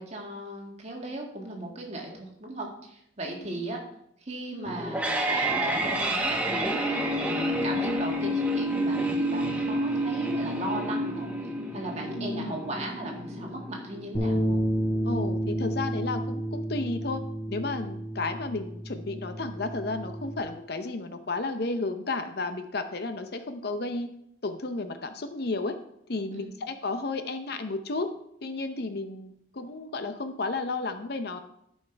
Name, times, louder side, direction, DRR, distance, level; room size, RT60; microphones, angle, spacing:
voice 1, 0.0-3.8 4.2-6.8 7.2-11.3 11.7-14.6 26.3-26.6, right 2 dB, 35° right, 0 dB, 2.0 m, -37 dB
voice 2, 3.3-3.6 12.2-12.5 15.0-17.2 17.5-24.1 24.4-25.7 26.1-28.1 28.4-31.4, left 3 dB, 55° left, 8 dB, 0.7 m, -32 dB
sound 1, 4.7-15.7, right 1 dB, 5° right, 1.0 m, -29 dB
sound 2, 14.1-20.4, equal, 35° left, 3.6 m, -30 dB
13.0 x 5.7 x 4.6 m, 0.74 s
head